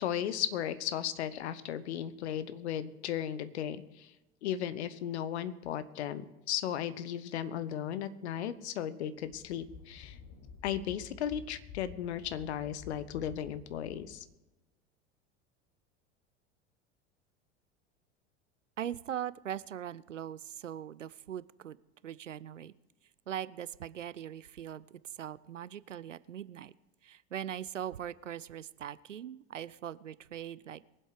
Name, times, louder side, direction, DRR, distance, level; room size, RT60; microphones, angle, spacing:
voice 1, 0.0-4.1 4.4-10.2 10.6-14.2, left 10 dB, 65° left, 15 dB, 1.0 m, -36 dB
sound 1, 8.6-8.7 9.2-14.3, left 6 dB, 40° left, 1.7 m, -51 dB
voice 2, 18.8-21.8 22.0-22.7 23.3-26.7 27.0-30.8, right 10 dB, 85° right, 19 dB, 0.5 m, -41 dB
23.0 x 7.8 x 4.9 m, 1.0 s
figure-of-eight pair, 80°, 36 cm